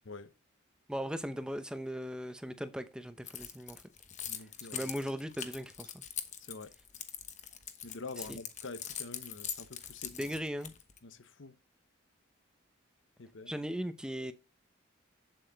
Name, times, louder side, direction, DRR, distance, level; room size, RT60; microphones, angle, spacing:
voice 1, 0.9-3.8 4.7-6.0 8.2-8.4 10.1-10.7 13.5-14.3, equal, 5° right, 0.7 m, -38 dB
Keys jangling, 3.3-11.0, left 9 dB, 35° left, 1.1 m, -42 dB
voice 2, 4.3-4.9 6.4-6.7 7.8-10.3 11.0-11.6 13.2-13.5, left 3 dB, 75° left, 0.9 m, -46 dB
8.6 x 7.8 x 4.0 m
head